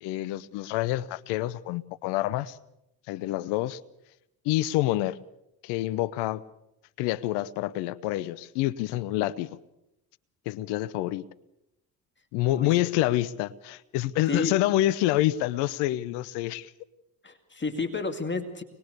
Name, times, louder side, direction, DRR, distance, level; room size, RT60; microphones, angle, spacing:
voice 1, 0.0-2.6 3.1-3.8 4.4-5.2 5.6-6.4 7.0-9.6 10.5-11.2 12.3-16.7, left 15 dB, 75° left, 18 dB, 0.8 m, -27 dB
voice 2, 17.2-18.6, left 3 dB, 25° left, 7 dB, 2.4 m, -31 dB
25.0 x 21.0 x 6.7 m, 0.88 s
hypercardioid pair, 50°, 42 cm